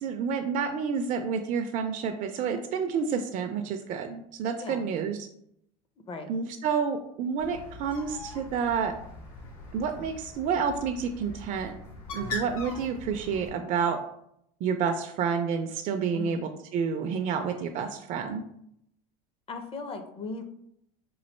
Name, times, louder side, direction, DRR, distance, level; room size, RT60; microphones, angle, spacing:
voice 1, 0.0-5.2 6.3-8.9 9.7-11.7 12.1-14.0 14.6-18.4, right 6 dB, 45° right, 5 dB, 0.4 m, -29 dB
Bird, 7.4-13.5, left 2 dB, 80° left, 1.1 m, -41 dB
voice 2, 16.1-16.4 19.5-20.4, left 3 dB, 30° left, 7 dB, 0.5 m, -37 dB
3.1 x 2.5 x 4.2 m, 0.73 s
supercardioid pair, 100°, 19 cm